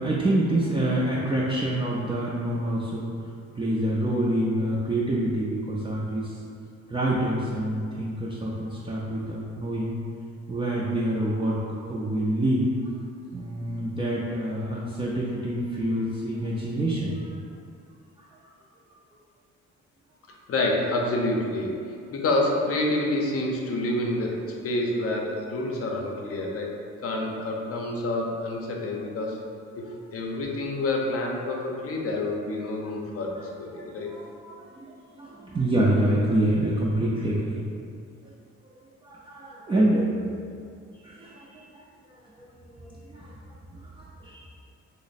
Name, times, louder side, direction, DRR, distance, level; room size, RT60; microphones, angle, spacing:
voice 1, 0.0-3.1 3.6-6.4 6.9-10.0 10.5-12.7 13.3-17.4 29.8-30.0 33.7-34.2 34.6-37.6 39.0-40.1 41.0-41.7 42.4-43.3 43.7-44.4, right 1 dB, 15° right, -6 dB, 0.4 m, -27 dB
voice 2, 20.5-26.7 27.0-29.4 29.8-34.1 34.4-34.6, left 2 dB, 50° left, 0 dB, 0.6 m, -28 dB
3.0 x 2.0 x 4.0 m, 2.3 s
cardioid pair, 90°, 30 cm